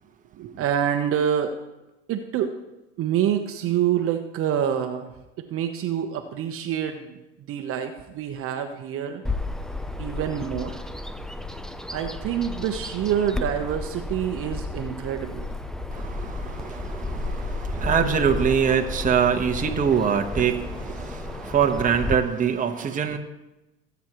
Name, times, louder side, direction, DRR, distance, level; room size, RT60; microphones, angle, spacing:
voice 1, 0.4-1.5 2.1-2.6 3.0-5.1 5.5-9.2 10.0-10.8 11.9-15.5, right 9 dB, 45° right, 5 dB, 1.1 m, -26 dB
Bird vocalization bird call bird song, 9.2-22.1, left 2 dB, ahead, 0.6 m, -32 dB
voice 2, 15.9-23.2, right 7 dB, 25° right, 4 dB, 1.3 m, -24 dB
19.0 x 8.3 x 3.1 m, 0.99 s
hypercardioid pair, 95°, 30 cm